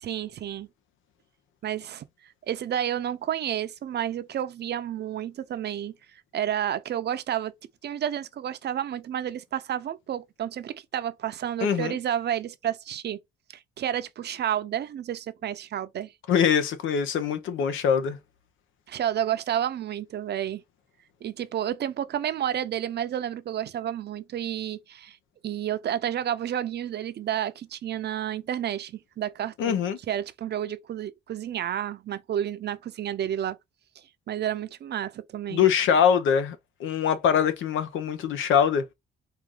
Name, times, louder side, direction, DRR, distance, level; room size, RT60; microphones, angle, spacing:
voice 1, 0.0-0.7 1.6-2.0 2.5-7.5 7.8-13.2 13.5-16.1 18.9-20.6 21.2-25.2 25.4-29.8 30.1-33.6 34.3-35.6, right 10 dB, 55° right, 0.6 m, -30 dB
voice 2, 11.6-11.9 16.3-18.2 29.6-30.0 35.5-38.9, left 7 dB, 80° left, 0.9 m, -23 dB
4.5 x 2.6 x 3.8 m
cardioid pair, 90°, 20 cm